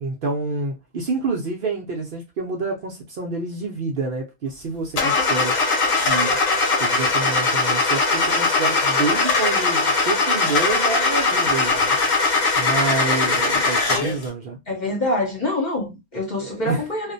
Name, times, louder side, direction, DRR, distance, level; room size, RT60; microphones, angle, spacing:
voice 1, 0.0-5.6 6.1-6.4 6.8-12.0 12.6-14.6 16.4-16.9, right 3 dB, 75° right, 0.5 m, -28 dB
Car / Engine starting, 5.0-14.2, left 3 dB, 70° left, 1.1 m, -20 dB
voice 2, 14.7-17.1, left 1 dB, 40° left, 0.7 m, -25 dB
2.4 x 2.1 x 2.5 m
omnidirectional pair, 1.5 m